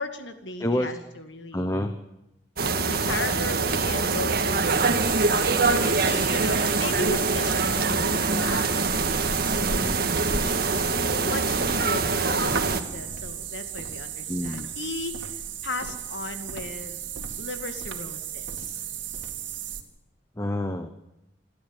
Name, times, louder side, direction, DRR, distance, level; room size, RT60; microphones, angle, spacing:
voice 1, 0.0-1.7 2.7-5.1 5.7-9.6 10.3-15.3 15.6-17.0 17.4-18.8, left 2 dB, 75° left, 7 dB, 2.2 m, -36 dB
voice 2, 0.6-0.9 1.5-2.0 14.3-14.7 20.4-20.9, left 1 dB, 15° left, 8 dB, 1.0 m, -27 dB
sound 1, 2.6-12.8, right 4 dB, 55° right, 1.7 m, -24 dB
sound 2, 4.7-19.8, right 7 dB, 85° right, 2.3 m, -35 dB
28.0 x 12.0 x 9.0 m, 0.87 s
head